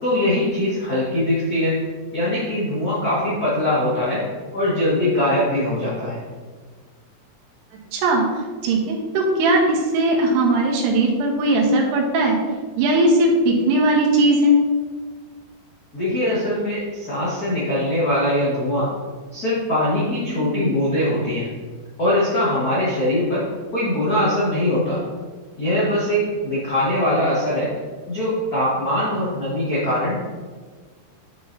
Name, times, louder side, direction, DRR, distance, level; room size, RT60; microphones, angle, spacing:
voice 1, 0.0-1.8 2.1-4.2 4.5-6.2 15.9-18.9 19.3-21.5 22.0-23.4 23.7-25.0 25.6-27.7 28.1-30.2, left 1 dB, 75° left, -9 dB, 0.8 m, -22 dB
voice 2, 7.9-8.2 8.6-12.4 12.8-14.5 20.3-20.6, right 1 dB, 90° right, -1 dB, 3.2 m, -18 dB
9.1 x 6.1 x 2.7 m, 1.5 s
omnidirectional pair, 4.6 m